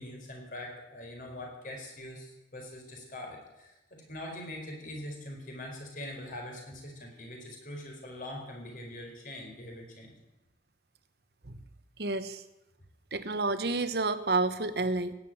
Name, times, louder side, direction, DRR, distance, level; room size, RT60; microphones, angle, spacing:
voice 1, 0.0-10.1, left 1 dB, 45° left, 1 dB, 4.5 m, -43 dB
voice 2, 12.0-12.4 13.1-15.1, right 3 dB, 60° right, 12 dB, 1.0 m, -29 dB
17.0 x 8.3 x 8.8 m, 0.96 s
head